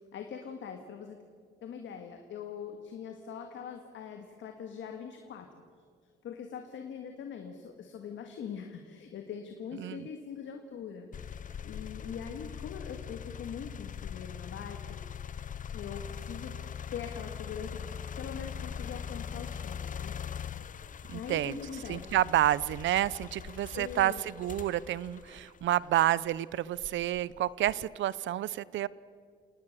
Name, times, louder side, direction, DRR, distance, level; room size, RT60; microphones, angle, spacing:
voice 1, 0.1-1.2 1.6-5.5 6.2-15.0 15.7-16.6 16.9-17.9 18.2-20.1 21.1-22.0 23.7-24.2, left 7 dB, 70° left, 5 dB, 1.8 m, -42 dB
voice 2, 9.8-10.1 21.1-21.6 21.9-28.9, right 13 dB, 70° right, 20 dB, 0.7 m, -29 dB
sound 1, 11.1-26.2 26.8-28.0, left 8 dB, 40° left, 0.7 m, -42 dB
28.0 x 18.5 x 6.7 m, 2.1 s
cardioid pair, 90°, 20 cm